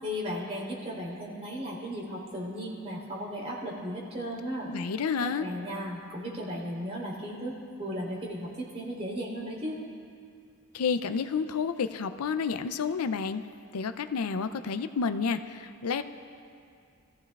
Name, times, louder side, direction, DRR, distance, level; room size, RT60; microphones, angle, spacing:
voice 1, 0.0-4.7 5.3-7.5 7.8-9.8, equal, 30° right, -5 dB, 3.4 m, -35 dB
voice 2, 4.7-5.5 10.7-13.4 13.7-16.0, left 5 dB, 80° left, 10 dB, 0.5 m, -30 dB
24.0 x 15.0 x 2.4 m, 2.4 s
head